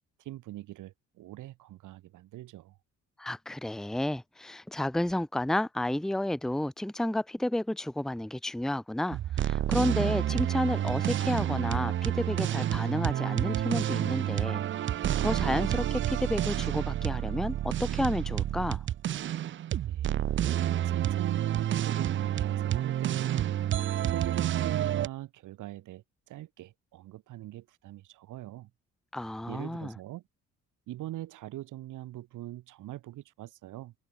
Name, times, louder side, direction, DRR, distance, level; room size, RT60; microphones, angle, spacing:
voice 1, 0.2-2.8 19.8-20.3 20.8-23.4 23.9-28.7 29.5-30.2 30.9-33.9, right 15 dB, 85° right, 1.6 m, -42 dB
voice 2, 3.2-14.6 15.2-18.8 29.1-29.9, left 1 dB, ahead, 0.8 m, -31 dB
sound 1, 9.1-25.1, right 11 dB, 40° right, 0.4 m, -29 dB
cardioid pair, 90°, 30 cm